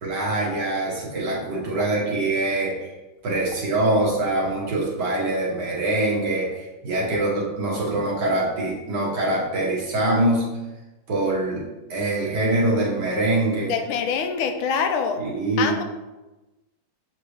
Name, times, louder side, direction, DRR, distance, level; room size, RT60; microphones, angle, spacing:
voice 1, 0.0-2.9 3.2-10.5 11.1-13.7 15.2-15.7, right 2 dB, 55° right, -4 dB, 2.0 m, -24 dB
voice 2, 13.7-15.2 15.6-15.8, left 6 dB, 80° left, 6 dB, 1.5 m, -24 dB
7.6 x 4.1 x 3.2 m, 1.1 s
omnidirectional pair, 2.3 m